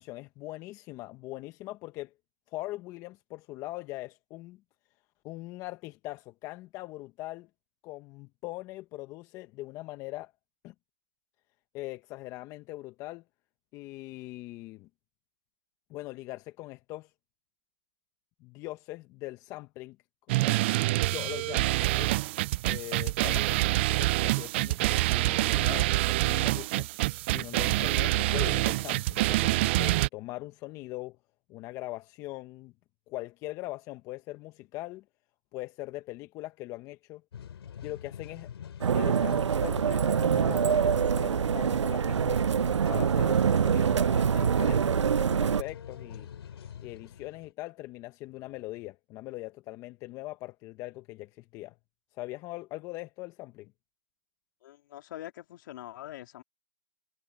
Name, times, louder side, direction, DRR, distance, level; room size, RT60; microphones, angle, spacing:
voice 1, 0.0-2.1 2.5-4.6 5.2-7.5 7.8-10.3 10.6-10.7 11.7-13.2 13.7-14.9 15.9-17.1 18.4-20.0 20.3-20.6 20.9-22.2 22.6-26.9 27.3-31.2 31.5-32.7 33.1-35.0 35.5-37.2 37.8-38.5 38.8-42.4 42.9-46.3 46.8-51.8 52.1-53.7, left 18 dB, 20° left, 1.0 m, -41 dB
sound 1, 20.3-30.1, right 18 dB, 25° right, 0.3 m, -26 dB
sound 2, 37.3-47.5, left 8 dB, 60° left, 4.9 m, -44 dB
sound 3, 38.8-45.6, right 7 dB, 85° right, 0.6 m, -25 dB
voice 2, 54.6-56.4, left 13 dB, 45° left, 2.8 m, -44 dB
hypercardioid pair, 150°, 15 cm